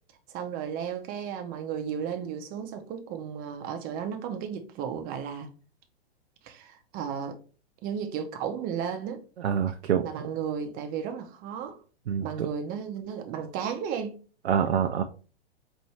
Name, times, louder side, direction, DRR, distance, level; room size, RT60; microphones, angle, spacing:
voice 1, 0.3-5.5 6.4-7.4 7.8-9.2 10.0-11.8 12.2-14.2, right 7 dB, 30° right, 0.7 m, -34 dB
voice 2, 9.4-10.3 12.1-12.5 14.4-15.0, right 8 dB, 80° right, 0.6 m, -26 dB
4.2 x 2.6 x 3.2 m
hypercardioid pair, 120°, 32 cm